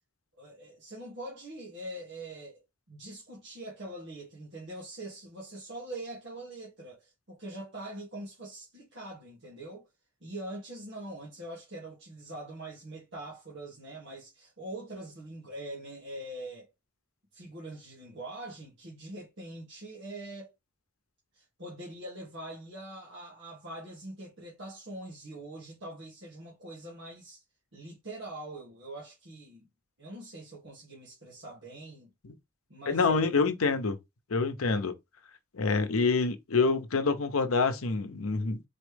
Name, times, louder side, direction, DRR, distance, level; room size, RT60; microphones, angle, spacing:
voice 1, 0.4-2.6 2.9-9.9 10.2-16.7 17.3-20.5 21.3-27.4 27.7-29.7 30.0-32.1 32.7-33.4, right 1 dB, 55° right, 1.6 m, -43 dB
voice 2, 32.9-34.0 34.3-34.9 35.5-38.6, left 4 dB, 80° left, 0.7 m, -27 dB
4.2 x 3.1 x 3.3 m
head